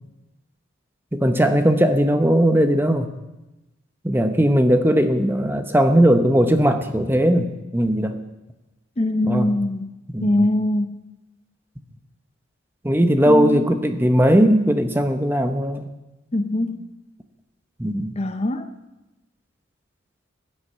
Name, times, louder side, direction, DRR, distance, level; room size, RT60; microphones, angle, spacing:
voice 1, 1.1-3.1 4.0-8.2 9.2-9.5 10.1-10.5 12.8-15.9 17.8-18.2, equal, 10° right, 7 dB, 0.9 m, -18 dB
voice 2, 9.0-9.9 10.2-11.0 13.2-13.6 16.3-16.9 18.2-18.7, left 1 dB, 30° left, 9 dB, 0.8 m, -22 dB
16.0 x 9.9 x 7.4 m, 1.0 s
head